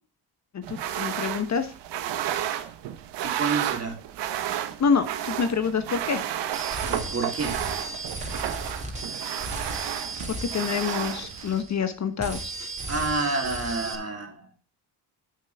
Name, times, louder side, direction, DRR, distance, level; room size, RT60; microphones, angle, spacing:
voice 1, 0.5-1.7 4.8-6.2 10.3-12.5, left 6 dB, 40° left, 10 dB, 1.0 m, -27 dB
sound 1, 0.6-11.6, right 11 dB, 75° right, 1.1 m, -32 dB
voice 2, 3.2-4.0 6.8-7.5 12.9-14.5, right 3 dB, 35° right, 2 dB, 3.2 m, -29 dB
sound 2, 6.5-11.9 12.2-14.0, right 2 dB, 15° right, 2.7 m, -35 dB
9.8 x 7.4 x 3.4 m, 0.38 s
cardioid pair, 95°, 42 cm